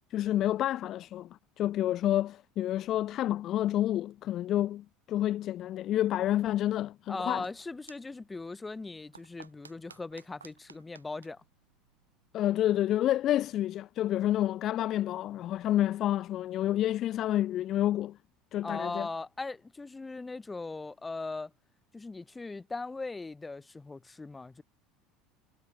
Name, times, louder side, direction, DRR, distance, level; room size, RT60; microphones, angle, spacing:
voice 1, 0.1-1.3 1.6-7.5 12.3-18.2 18.5-19.1, left 13 dB, 45° left, 0.3 m, -29 dB
sound 1, 7.0-12.4, right 5 dB, 85° right, 3.5 m, -58 dB
voice 2, 7.1-11.4 18.6-21.5 21.9-24.6, left 3 dB, 15° left, 2.7 m, -39 dB
figure-of-eight pair, 70°, 0 cm